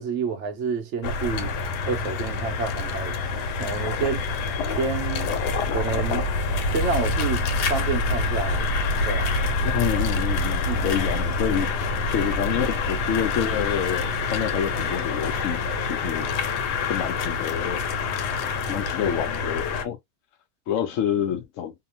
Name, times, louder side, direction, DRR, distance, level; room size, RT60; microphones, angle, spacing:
voice 1, 0.0-1.5 1.9-4.2 4.8-5.3 5.7-6.3 6.7-8.7 9.1-9.3 10.7-10.9, right 5 dB, 65° right, 0.7 m, -29 dB
sound 1, 1.0-19.8, left 3 dB, 90° left, 1.2 m, -26 dB
voice 2, 9.6-16.4 16.8-17.8 18.7-20.0 20.7-21.7, left 9 dB, 65° left, 0.8 m, -28 dB
2.8 x 2.1 x 2.7 m
omnidirectional pair, 1.7 m